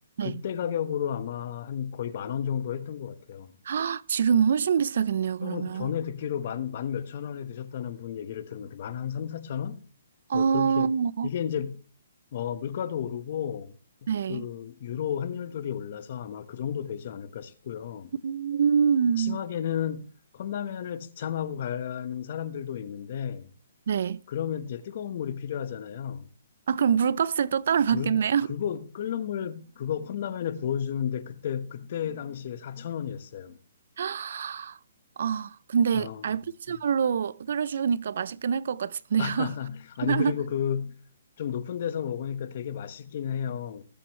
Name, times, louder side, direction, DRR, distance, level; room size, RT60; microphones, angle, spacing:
voice 1, 0.2-3.5 5.4-9.8 10.3-10.9 11.2-11.8 12.3-13.7 14.0-18.1 19.2-20.0 20.3-23.5 24.3-26.3 27.9-28.1 28.5-33.6 35.9-36.4 39.2-40.9 41.4-43.8, left 9 dB, 45° left, 1.3 m, -32 dB
voice 2, 3.7-5.9 10.3-11.3 14.1-14.4 18.2-19.4 23.9-24.2 26.7-28.5 34.0-34.8 35.2-39.5 40.0-40.3, right 7 dB, 60° right, 0.5 m, -25 dB
20.5 x 8.4 x 3.2 m
hypercardioid pair, 165°, 0 cm